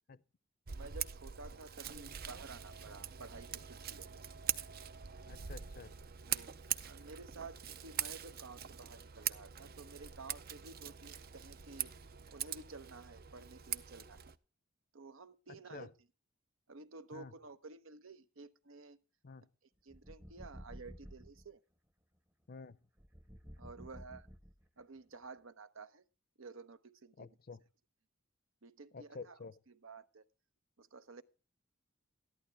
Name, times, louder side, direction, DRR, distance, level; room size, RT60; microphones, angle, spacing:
Scissors, 0.7-14.4, right 9 dB, 50° right, 0.6 m, -43 dB
voice 1, 0.7-4.2 6.3-6.5 6.8-11.9 12.3-14.3 14.9-15.9 16.7-19.0 19.8-21.6 23.6-24.3 24.8-26.0 26.4-27.3 28.6-29.4 29.7-30.2 30.8-31.2, right 3 dB, 80° right, 0.9 m, -52 dB
voice 2, 5.3-6.0 15.5-15.9 17.1-17.3 19.2-19.5 22.5-22.8 27.2-27.6 28.9-29.6, left 4 dB, 45° left, 0.6 m, -50 dB
sound 1, 19.9-21.5 23.0-24.8, equal, 10° right, 0.8 m, -52 dB
13.5 x 11.5 x 3.4 m
head